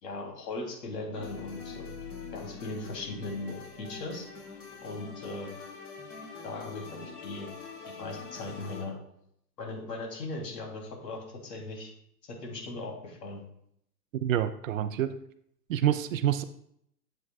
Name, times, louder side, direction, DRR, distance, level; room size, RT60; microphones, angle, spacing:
voice 1, 0.0-1.8 2.3-4.3 4.8-5.5 6.4-7.5 7.8-9.0 9.6-11.9 12.2-13.4, left 2 dB, 75° left, 0 dB, 3.1 m, -38 dB
sound 1, 1.1-8.8, left 5 dB, 45° left, 2.7 m, -44 dB
voice 2, 14.1-15.2 15.7-16.4, right 11 dB, 55° right, 11 dB, 0.5 m, -27 dB
7.9 x 7.5 x 2.3 m, 0.71 s
hypercardioid pair, 140°, 50 cm